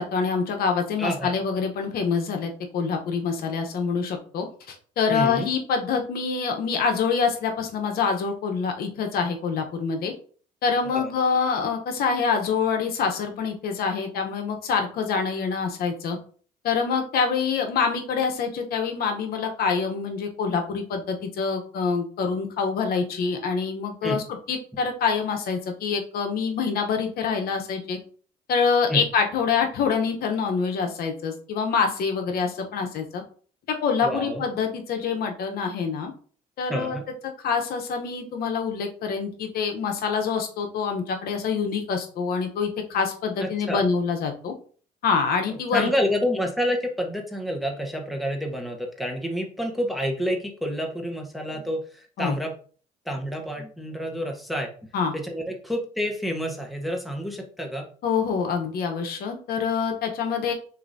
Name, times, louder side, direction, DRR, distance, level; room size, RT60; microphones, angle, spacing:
voice 1, 0.0-10.1 10.6-16.2 16.6-28.0 28.5-33.2 33.7-36.1 36.6-37.0 37.4-44.5 45.0-45.9 52.2-52.3 54.9-55.1 58.0-60.5, left 5 dB, 65° left, 4 dB, 0.9 m, -26 dB
voice 2, 1.0-1.3 5.1-5.5 10.9-11.1 24.0-24.2 28.9-29.1 34.0-34.4 36.7-37.0 43.4-43.9 45.5-52.5 53.0-54.7 55.1-57.8, equal, ahead, 1 dB, 0.9 m, -28 dB
6.6 x 2.6 x 2.6 m, 0.43 s
cardioid pair, 110°, 17 cm